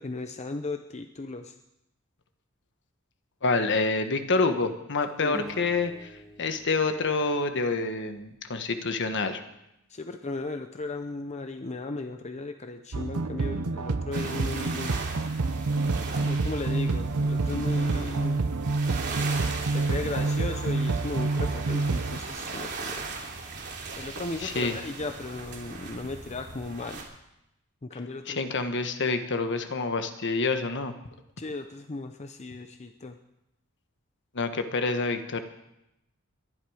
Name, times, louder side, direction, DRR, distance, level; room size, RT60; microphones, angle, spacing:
voice 1, 0.0-1.6 5.2-5.4 9.9-14.9 16.2-18.4 19.7-23.1 24.0-27.0 27.8-28.4 31.4-33.2, left 3 dB, 30° left, 7 dB, 0.7 m, -36 dB
voice 2, 3.4-6.1 6.4-9.4 24.4-24.7 28.3-30.9 34.3-35.4, left 3 dB, 55° left, 8 dB, 1.3 m, -27 dB
sound 1, 5.3-8.5, right 1 dB, ahead, 1.6 m, -46 dB
sound 2, 12.9-22.2, right 3 dB, 90° right, 0.7 m, -28 dB
sound 3, 14.1-27.0, right 4 dB, 55° right, 2.9 m, -38 dB
22.0 x 11.0 x 5.0 m, 0.88 s
head